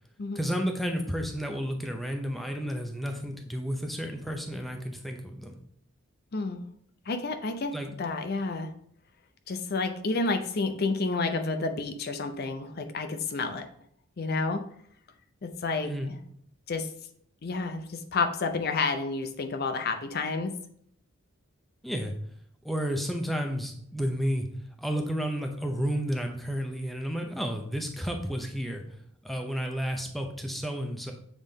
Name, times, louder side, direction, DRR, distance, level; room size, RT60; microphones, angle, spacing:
voice 1, 0.3-5.5 7.7-7.9 15.8-16.2 21.8-22.1 22.6-24.5 24.8-28.8 29.2-31.1, equal, ahead, 3 dB, 0.6 m, -31 dB
voice 2, 7.1-8.7 9.5-13.7 14.2-14.6 15.4-15.9 16.7-16.9 17.4-20.5, left 3 dB, 45° left, 7 dB, 0.6 m, -30 dB
7.3 x 3.9 x 3.6 m, 0.65 s
head